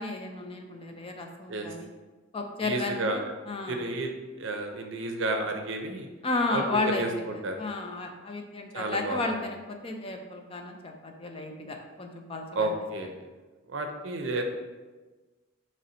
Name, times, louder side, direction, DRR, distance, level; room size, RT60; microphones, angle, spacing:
voice 1, 0.0-1.9 2.3-3.8 6.2-7.3 7.6-12.7, left 3 dB, 30° left, 3 dB, 0.4 m, -33 dB
voice 2, 2.6-3.3 3.7-4.1 4.4-6.1 6.5-7.6 8.7-9.2 12.5-13.2 13.7-14.4, right 2 dB, 65° right, 4 dB, 0.5 m, -31 dB
3.9 x 3.1 x 4.2 m, 1.3 s
head